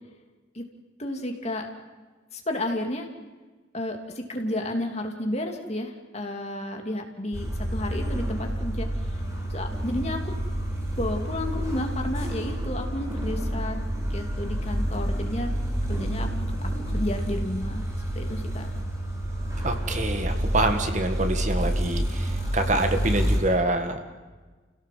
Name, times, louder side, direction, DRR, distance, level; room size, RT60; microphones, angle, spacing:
voice 1, 1.0-1.7 2.3-3.1 3.7-8.9 9.5-10.3 11.0-13.8 14.1-15.5 15.9-16.3 16.6-17.9 18.1-18.7, left 1 dB, 35° left, 3 dB, 2.9 m, -32 dB
sound 1, 7.3-23.4, equal, 15° right, 4.8 m, -28 dB
voice 2, 19.6-24.0, right 2 dB, 40° right, 6 dB, 1.9 m, -26 dB
29.5 x 17.0 x 7.6 m, 1.3 s
head